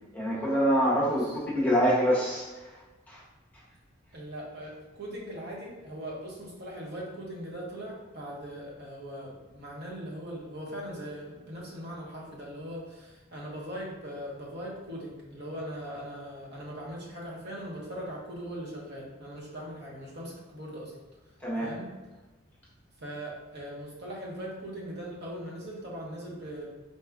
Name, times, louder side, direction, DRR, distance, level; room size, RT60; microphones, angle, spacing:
voice 1, 0.1-1.3 1.5-2.7 3.1-3.2 21.4-21.7, equal, 10° left, -6 dB, 0.8 m, -25 dB
voice 2, 1.1-1.4 4.1-21.0 21.6-21.9 23.0-26.7, equal, 50° right, -4 dB, 0.9 m, -40 dB
4.2 x 2.3 x 3.5 m, 1.2 s
head